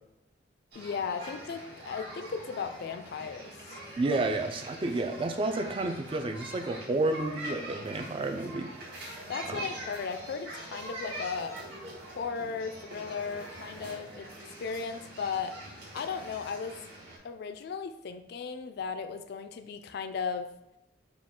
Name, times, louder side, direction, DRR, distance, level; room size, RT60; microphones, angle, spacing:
voice 1, 0.7-3.8 9.3-11.6 12.2-14.3 14.6-16.8 17.2-20.5, left 5 dB, 60° left, 8 dB, 0.3 m, -36 dB
sound 1, 0.7-17.2, right 1 dB, 60° right, 1.5 m, -44 dB
voice 2, 4.0-8.7 9.5-9.6, right 2 dB, 30° right, 6 dB, 0.3 m, -30 dB
4.9 x 2.3 x 3.6 m, 0.83 s
head